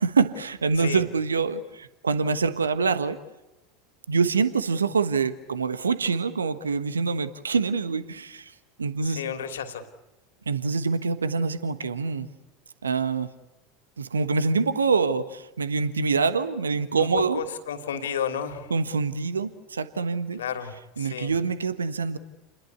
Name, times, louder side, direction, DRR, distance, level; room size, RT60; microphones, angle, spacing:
voice 1, 0.0-3.2 4.1-8.5 8.8-9.2 10.5-12.3 12.8-13.3 14.0-17.4 18.7-20.4 21.0-22.2, right 4 dB, 80° right, 13 dB, 1.2 m, -25 dB
voice 2, 9.0-9.8 17.0-17.1 17.3-18.7 20.4-21.3, left 7 dB, 70° left, 7 dB, 3.0 m, -32 dB
29.5 x 21.0 x 8.4 m, 0.96 s
figure-of-eight pair, 80°, 0 cm